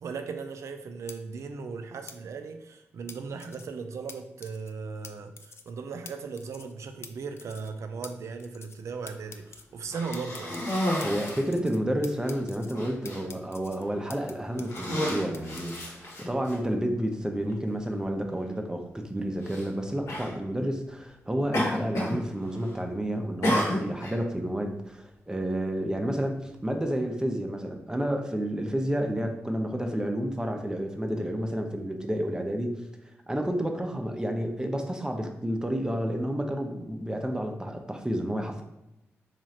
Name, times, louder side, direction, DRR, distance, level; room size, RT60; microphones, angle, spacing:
voice 1, 0.0-10.6, right 5 dB, 75° right, 7 dB, 0.4 m, -37 dB
sound 1, 1.1-1.2 2.1-2.2 3.1-3.7 4.1-4.2 4.4-4.7 5.0-5.1 5.4-5.7 6.1-6.2 6.4-6.7 7.0-7.1 7.4-7.7 8.0-8.1 8.4-8.8 9.1-9.6 10.1-11.8 12.0-12.7 13.1-14.3 14.6-15.9, left 5 dB, 60° left, 0.3 m, -46 dB
Cough, 9.9-11.5 12.2-12.4 12.7-13.2 14.0-14.2 14.6-16.6 17.5-17.6 19.4-19.7 20.1-20.3 21.5-22.2 22.5-22.9 23.4-24.2, equal, 80° left, 1.1 m, -31 dB
voice 2, 11.0-32.8 33.3-38.6, equal, 15° right, 4 dB, 0.6 m, -30 dB
3.0 x 2.4 x 4.0 m, 0.92 s
cardioid pair, 55°, 5 cm